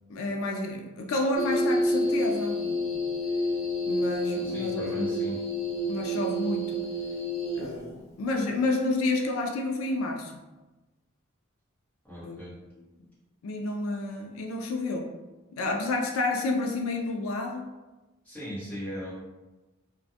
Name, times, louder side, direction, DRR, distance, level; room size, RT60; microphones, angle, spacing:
voice 1, 0.1-3.0 3.9-5.2 5.9-6.9 7.6-10.3 12.2-12.5 13.0-13.1 13.4-15.1 15.5-17.7, left 2 dB, 90° left, 2 dB, 0.4 m, -30 dB
sound 1, 1.3-7.9, left 1 dB, 55° left, 0.7 m, -29 dB
voice 2, 4.4-5.5 12.0-12.5 18.2-19.1, equal, 5° left, -11 dB, 1.1 m, -38 dB
2.4 x 2.1 x 2.7 m, 1.1 s
head